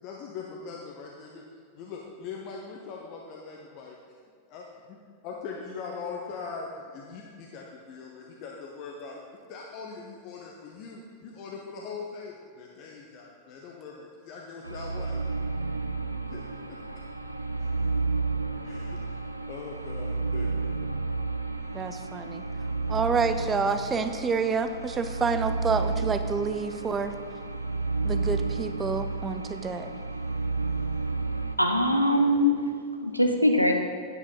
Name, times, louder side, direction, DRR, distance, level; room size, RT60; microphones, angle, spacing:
voice 1, 0.0-1.4 1.7-4.0 4.5-4.6 5.2-9.2 9.5-15.2 16.3-16.4 16.7-16.8 17.6-17.9 18.6-20.7, left 5 dB, 45° left, -1 dB, 1.0 m, -41 dB
sound 1, 14.6-31.6, right 3 dB, 85° right, 0.5 m, -31 dB
voice 2, 21.7-22.4 22.9-27.1 28.0-30.0, right 5 dB, 20° right, 9 dB, 0.6 m, -28 dB
voice 3, 31.6-32.7 33.0-33.7, left 1 dB, 90° left, 4 dB, 0.8 m, -22 dB
9.6 x 9.2 x 4.0 m, 2.1 s
figure-of-eight pair, 90°, 0 cm